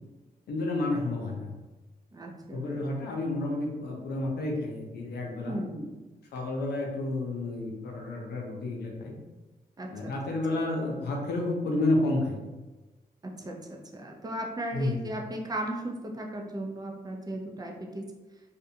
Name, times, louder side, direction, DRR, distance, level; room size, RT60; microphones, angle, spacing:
voice 1, 0.5-1.5 2.5-5.6 6.3-9.2 9.9-12.4 14.7-14.9, left 2 dB, 85° left, -1 dB, 0.6 m, -30 dB
voice 2, 2.1-2.8 5.5-6.1 9.8-10.1 10.5-10.6 13.4-18.1, right 1 dB, 25° right, 0 dB, 0.5 m, -36 dB
2.5 x 2.1 x 2.7 m, 1.1 s
cardioid pair, 75°, 16 cm